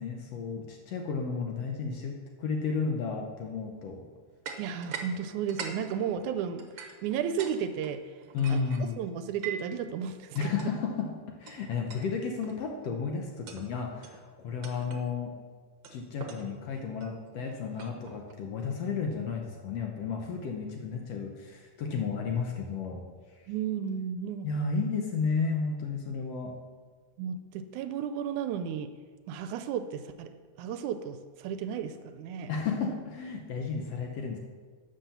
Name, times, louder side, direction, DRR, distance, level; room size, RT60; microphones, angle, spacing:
voice 1, 0.0-4.0 8.3-9.0 10.3-15.3 15.9-23.0 24.4-26.5 32.5-34.4, left 5 dB, 65° left, 2 dB, 1.7 m, -33 dB
sound 1, 4.4-5.1 5.4-7.5 7.8-9.8 10.3-10.7 11.5-11.6 11.9-12.1 12.4-12.7 13.3-13.7 14.0-14.2 14.6-15.1 15.8-18.3, right 6 dB, 60° right, 1.3 m, -43 dB
voice 2, 4.6-8.0 8.5-10.5 23.5-24.5 27.2-28.9 29.3-30.3 30.6-32.5, right 8 dB, 80° right, 10 dB, 1.9 m, -34 dB
11.5 x 6.1 x 6.9 m, 1.5 s
omnidirectional pair, 3.6 m